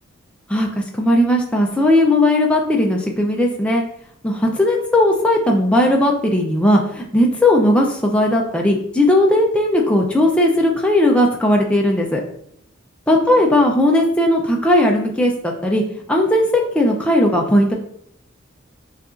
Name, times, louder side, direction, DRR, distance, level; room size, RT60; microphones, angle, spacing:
voice 1, 0.5-3.8 4.2-12.2 13.1-15.8 16.1-17.7, left 1 dB, 5° left, 0 dB, 0.4 m, -17 dB
6.5 x 2.4 x 2.4 m, 0.69 s
head